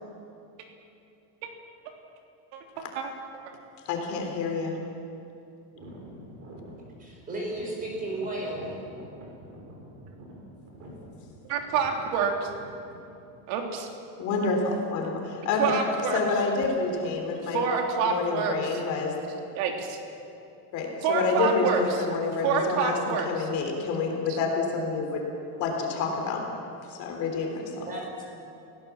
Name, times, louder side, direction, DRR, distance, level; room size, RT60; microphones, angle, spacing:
voice 1, 3.9-4.8 14.2-15.8 16.1-17.7 18.0-19.2 20.7-25.3 25.6-26.5 26.9-27.9, left 4 dB, 40° left, 2 dB, 3.5 m, -28 dB
sound 1, 5.7-13.1, equal, 35° right, 5.3 m, -46 dB
voice 2, 7.0-8.7 27.9-28.2, right 2 dB, 15° right, -1 dB, 4.7 m, -34 dB
voice 3, 11.5-12.5 13.5-13.9 15.6-16.2 17.5-18.8 19.5-20.0 21.0-22.0 22.4-23.5, right 6 dB, 55° right, 2 dB, 3.3 m, -27 dB
27.5 x 17.5 x 7.3 m, 2.7 s
cardioid pair, 180°, 47 cm